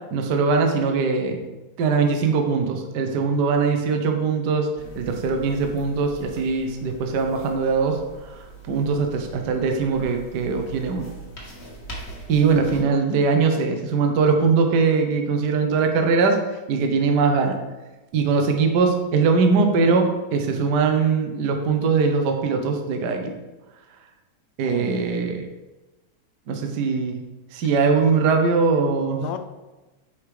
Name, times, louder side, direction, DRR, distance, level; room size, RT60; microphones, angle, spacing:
voice 1, 0.1-1.4 1.8-4.7 5.0-8.0 8.2-8.4 8.7-11.1 12.3-16.4 16.7-17.6 18.1-23.3 24.6-25.4 26.5-27.2 27.5-29.3, right 4 dB, 80° right, 4 dB, 0.9 m, -21 dB
sound 1, 4.8-12.8, right 3 dB, 30° left, 1.5 m, -41 dB
voice 2, 24.7-25.4 29.0-29.4, left 9 dB, 75° left, 9 dB, 1.7 m, -35 dB
8.9 x 5.1 x 4.9 m, 1.1 s
omnidirectional pair, 3.3 m